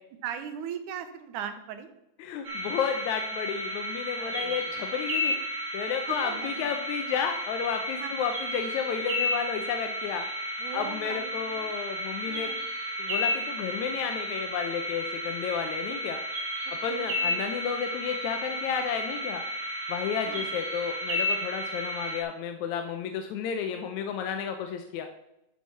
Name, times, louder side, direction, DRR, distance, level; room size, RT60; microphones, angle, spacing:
voice 1, 0.2-1.9 4.2-4.7 6.1-6.5 8.0-8.1 10.6-11.8 12.2-12.6 16.9-17.5 20.3-20.5, right 8 dB, 85° right, 8 dB, 2.4 m, -39 dB
voice 2, 2.2-5.4 5.7-10.2 10.7-12.5 13.0-16.2 16.8-19.4 19.9-25.1, left 7 dB, 75° left, 6 dB, 2.0 m, -32 dB
sound 1, 2.4-22.2, left 1 dB, 60° right, 2.9 m, -33 dB
12.0 x 4.5 x 5.6 m, 0.87 s
omnidirectional pair, 3.5 m